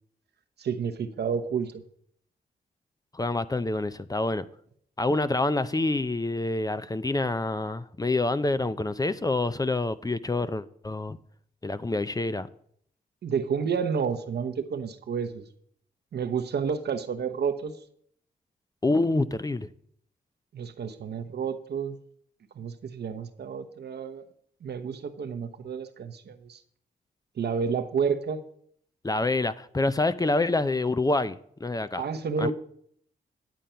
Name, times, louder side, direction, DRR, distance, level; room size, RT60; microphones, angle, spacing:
voice 1, 0.6-1.8 13.2-15.4 16.1-17.7 20.5-22.0 22.5-24.2 24.6-26.6 27.4-28.4 32.0-32.5, right 6 dB, 70° right, 1.0 m, -30 dB
voice 2, 3.1-4.5 5.0-11.2 11.6-12.5 18.8-19.7 29.0-32.0 32.4-32.5, left 2 dB, 20° left, 0.6 m, -27 dB
10.5 x 7.6 x 5.6 m
cardioid pair, 55°, 18 cm